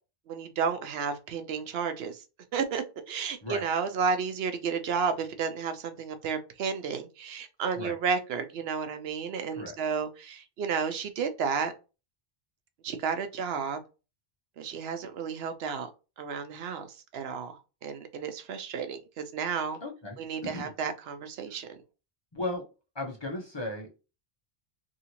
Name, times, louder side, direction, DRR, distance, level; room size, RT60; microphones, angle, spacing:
voice 1, 0.3-2.2 2.5-11.7 12.8-13.8 14.6-15.9 16.2-19.8 20.2-21.8, right 6 dB, 80° right, 0.8 m, -32 dB
voice 2, 19.8-20.7 22.3-22.6 22.9-24.0, left 1 dB, 30° left, 0.6 m, -36 dB
2.7 x 2.6 x 2.9 m
omnidirectional pair, 1.0 m